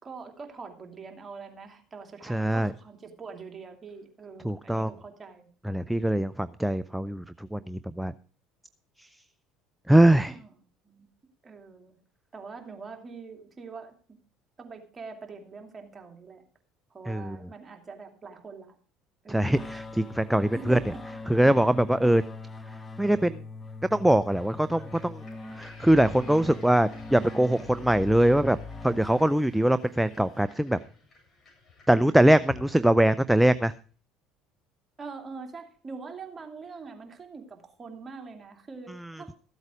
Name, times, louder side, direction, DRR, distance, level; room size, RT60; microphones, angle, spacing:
voice 1, 0.0-5.5 10.3-10.5 10.8-11.1 11.4-11.9 12.3-14.2 14.6-16.4 16.9-18.8 19.2-19.6 20.5-21.0 35.0-39.3, right 4 dB, 30° right, 4 dB, 2.6 m, -43 dB
voice 2, 2.3-2.7 4.4-4.9 5.6-8.1 9.0-9.1 9.9-10.4 17.1-17.4 19.3-20.8 21.3-22.2 23.0-23.4 23.9-25.2 25.5-28.6 28.8-30.8 31.9-33.7 39.0-39.2, right 1 dB, 5° right, 14 dB, 0.5 m, -22 dB
sound 1, 19.5-29.7, left 3 dB, 20° left, 1.2 m, -41 dB
sound 2, 24.4-33.7, left 4 dB, 40° left, 7.6 m, -51 dB
14.5 x 8.1 x 4.9 m, 0.41 s
hypercardioid pair, 70°, 0 cm